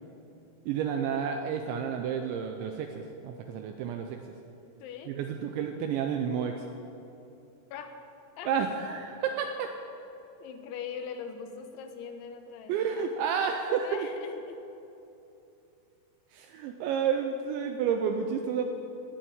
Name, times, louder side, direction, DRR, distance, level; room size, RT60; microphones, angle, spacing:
voice 1, 0.7-4.2 5.1-6.7 8.5-9.7 12.7-14.1 16.3-18.7, right 7 dB, 80° right, 5 dB, 2.7 m, -30 dB
voice 2, 4.8-5.1 7.7-7.9 8.4-8.5 10.4-13.1 13.8-14.6, left 7 dB, 75° left, 6 dB, 3.2 m, -41 dB
17.5 x 7.4 x 8.7 m, 2.8 s
omnidirectional pair, 5.7 m